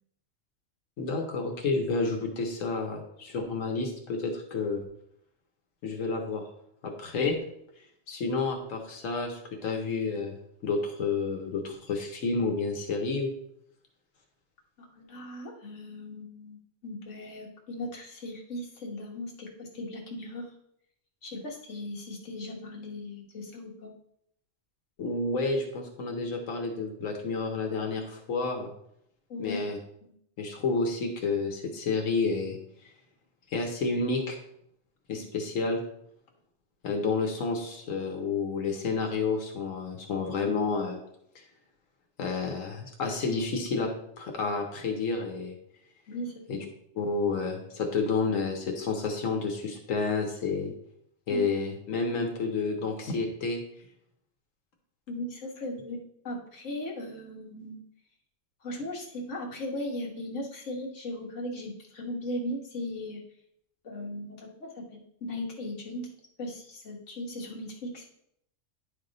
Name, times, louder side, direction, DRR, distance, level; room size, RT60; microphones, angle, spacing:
voice 1, 1.0-4.9 5.8-6.4 6.8-7.4 8.1-10.4 10.6-13.3 25.0-28.7 29.4-29.8 30.4-32.6 33.5-34.4 35.1-35.8 36.8-41.0 42.2-43.9 44.2-45.5 46.5-46.6 46.9-50.7 51.3-53.6, left 4 dB, 90° left, 2 dB, 1.3 m, -30 dB
voice 2, 14.8-20.5 21.2-23.9 29.3-29.6 30.0-30.1 35.1-35.2 46.1-46.7 51.3-51.4 55.1-57.8 58.6-63.2 63.8-66.1 66.4-68.0, left 1 dB, 70° left, -1 dB, 1.6 m, -38 dB
10.0 x 3.5 x 3.9 m, 0.73 s
omnidirectional pair, 1.3 m